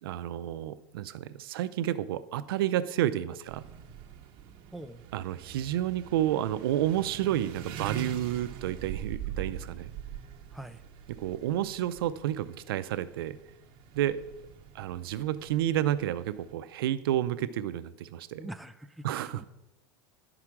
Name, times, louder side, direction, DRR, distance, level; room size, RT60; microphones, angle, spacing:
voice 1, 0.0-3.6 5.1-9.9 11.2-13.4 13.9-14.2 14.7-18.5 19.0-19.5, right 12 dB, 90° right, 13 dB, 0.5 m, -30 dB
sound 1, 3.5-16.6, right 8 dB, 45° right, 1.1 m, -44 dB
voice 2, 18.4-19.4, right 1 dB, ahead, 8 dB, 0.4 m, -44 dB
11.0 x 4.9 x 5.9 m, 0.94 s
supercardioid pair, 140°, 12 cm